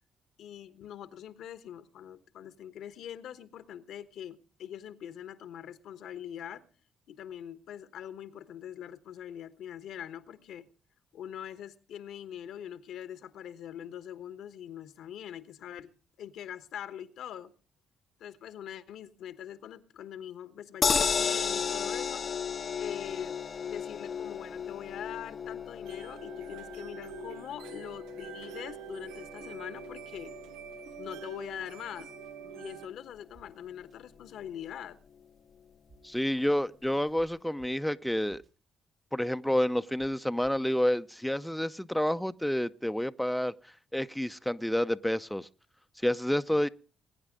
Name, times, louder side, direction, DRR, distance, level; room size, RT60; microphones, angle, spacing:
voice 1, 0.4-6.7 7.1-10.7 11.1-15.9 16.2-17.5 18.2-22.2 22.8-30.3 31.0-32.1 32.5-35.0, left 10 dB, 70° left, 1.1 m, -43 dB
sound 1, 20.8-33.0 33.4-33.5 33.8-33.9, left 6 dB, 50° left, 0.7 m, -35 dB
sound 2, 25.8-32.9, right 10 dB, 80° right, 0.7 m, -46 dB
sound 3, 33.3-33.4 33.9-34.0 35.9-36.2 37.2-37.3 37.6-37.7 38.3-38.5 40.0-40.1 40.4-40.8, right 4 dB, 60° right, 2.5 m, -58 dB
voice 2, 36.0-38.4 39.1-43.5 43.9-45.5 46.0-46.7, equal, 5° left, 0.7 m, -29 dB
21.5 x 9.6 x 3.8 m
hypercardioid pair, 50°, 0 cm